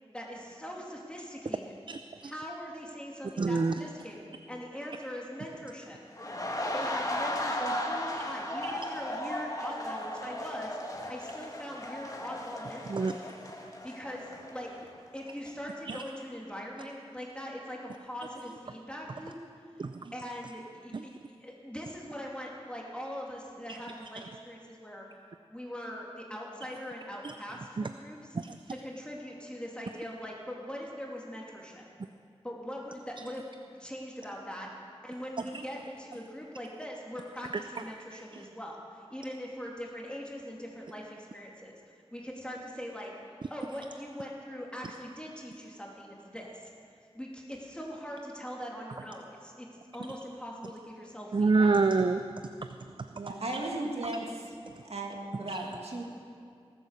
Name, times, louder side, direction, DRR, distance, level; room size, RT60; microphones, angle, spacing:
voice 1, 0.1-1.7 2.2-6.0 6.7-10.7 11.1-13.1 13.8-14.7 15.1-19.4 20.1-21.1 21.4-25.1 25.5-28.4 28.8-31.8 32.4-33.4 33.7-34.7 35.0-41.7 42.1-43.1 43.5-46.7 47.1-49.7 49.9-51.7, equal, 10° left, -2 dB, 2.7 m, -41 dB
voice 2, 1.9-2.3 3.4-3.7 8.6-8.7 12.9-13.1 15.9-16.0 19.8-20.1 20.9-21.0 23.7-23.8 27.2-27.3 27.8-27.9 28.3-28.6 38.1-38.2 51.3-52.5 55.5-55.6, right 4 dB, 50° right, 9 dB, 0.4 m, -27 dB
sound 1, 6.1-15.0 15.3-15.5, left 1 dB, 35° left, 1.7 m, -36 dB
voice 3, 53.1-54.5 54.8-56.0, right 2 dB, 75° right, 0 dB, 2.1 m, -36 dB
19.0 x 8.4 x 6.6 m, 2.3 s
wide cardioid pair, 65°, 11 cm